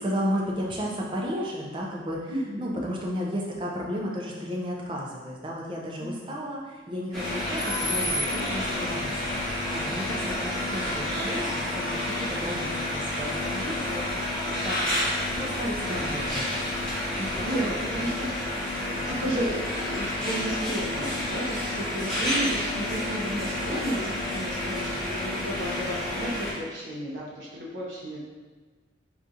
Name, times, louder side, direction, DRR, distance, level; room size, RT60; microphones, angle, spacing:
voice 1, 0.0-2.3 2.6-14.3 14.6-14.8 15.4-16.6 17.2-17.7 18.1-18.2 19.1-19.4, equal, 25° right, -3 dB, 0.4 m, -33 dB
voice 2, 2.3-2.8 6.0-6.4 17.4-18.3 18.9-28.2, right 1 dB, 75° right, -5 dB, 0.8 m, -33 dB
sound 1, 7.1-26.5, left 1 dB, 5° left, 0.9 m, -30 dB
4.0 x 2.4 x 2.5 m, 1.4 s
head